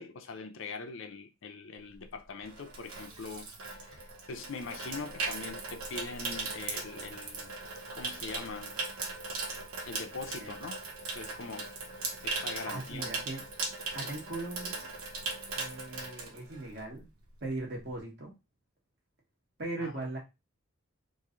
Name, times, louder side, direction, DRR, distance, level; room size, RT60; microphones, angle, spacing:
voice 1, 0.0-3.5 3.9-4.0 4.3-7.5 7.9-8.7 9.8-10.8 11.1-11.7 12.2-13.1 19.8-19.9, left 4 dB, 60° left, 0.5 m, -42 dB
Water tap faucet / Sink (filling or washing), 1.9-17.0 17.3-17.6, right 3 dB, 85° right, 0.9 m, -39 dB
voice 2, 12.6-13.4 13.9-14.9 15.5-17.1 17.4-18.3 19.6-20.2, right 2 dB, 50° right, 1.2 m, -39 dB
3.0 x 2.6 x 3.7 m
head